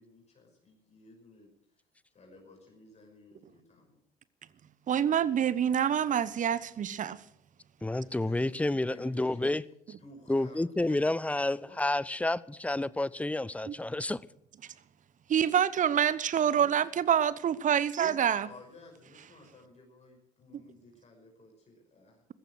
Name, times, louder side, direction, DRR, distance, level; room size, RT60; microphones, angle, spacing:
voice 1, 0.0-1.8 2.1-4.0 7.9-9.5 10.0-11.1 11.5-11.8 16.5-16.8 18.4-22.2, left 2 dB, 35° left, 5.8 m, -55 dB
voice 2, 4.9-7.2 13.7-13.8 15.3-18.5, right 9 dB, 40° right, 1.0 m, -26 dB
voice 3, 7.8-9.6 10.3-14.2, left 2 dB, 5° left, 0.6 m, -30 dB
15.0 x 15.0 x 6.3 m
figure-of-eight pair, 55°, 20 cm